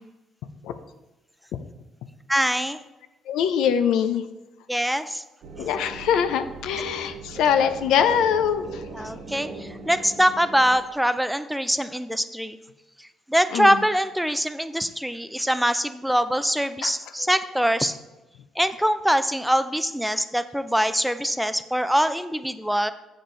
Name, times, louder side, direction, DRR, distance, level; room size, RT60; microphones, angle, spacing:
voice 1, 2.3-2.8 4.7-5.2 8.9-12.6 13.0-18.0 18.6-22.9, equal, ahead, 12 dB, 0.4 m, -23 dB
voice 2, 3.3-4.2 5.6-8.8 13.5-13.8 16.8-16.9, left 8 dB, 85° left, 10 dB, 0.6 m, -23 dB
sound 1, 5.4-10.8, right 3 dB, 70° right, 1.2 m, -40 dB
7.2 x 6.7 x 3.9 m, 1.1 s
cardioid pair, 95°, 0 cm